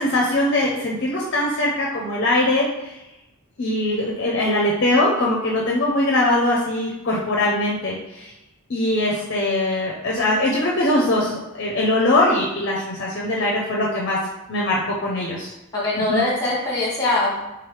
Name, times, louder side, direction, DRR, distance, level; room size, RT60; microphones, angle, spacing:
voice 1, 0.0-2.9 3.6-8.3 8.7-14.2 14.5-15.5 16.1-16.2, left 1 dB, 50° left, -3 dB, 0.5 m, -21 dB
voice 2, 15.7-17.4, left 2 dB, 15° left, -5 dB, 1.2 m, -22 dB
3.6 x 3.1 x 3.2 m, 0.96 s
head